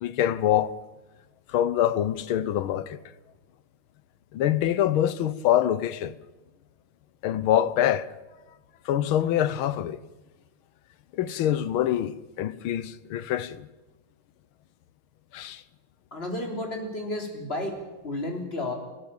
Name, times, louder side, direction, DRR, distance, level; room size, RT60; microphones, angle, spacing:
voice 1, 0.0-0.7 1.5-3.0 4.3-6.2 7.2-8.1 8.8-10.0 11.1-13.7 15.3-15.6, left 11 dB, 80° left, 1.7 m, -25 dB
voice 2, 16.1-17.8 18.0-18.7, left 1 dB, 30° left, 4.0 m, -32 dB
29.0 x 12.0 x 8.8 m
omnidirectional pair, 2.3 m